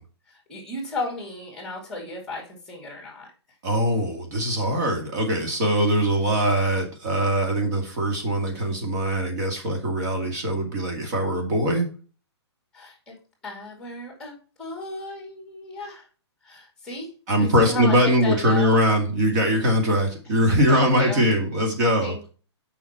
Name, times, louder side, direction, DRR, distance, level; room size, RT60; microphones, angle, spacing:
voice 1, 0.3-3.3 12.7-13.1 13.4-16.1 16.4-18.8 20.7-21.3 22.0-22.3, left 2 dB, 5° left, 1 dB, 2.6 m, -35 dB
voice 2, 3.6-11.9 17.3-22.2, equal, 40° right, 2 dB, 2.2 m, -22 dB
7.2 x 5.7 x 4.4 m, 0.36 s
hypercardioid pair, 160°, 15 cm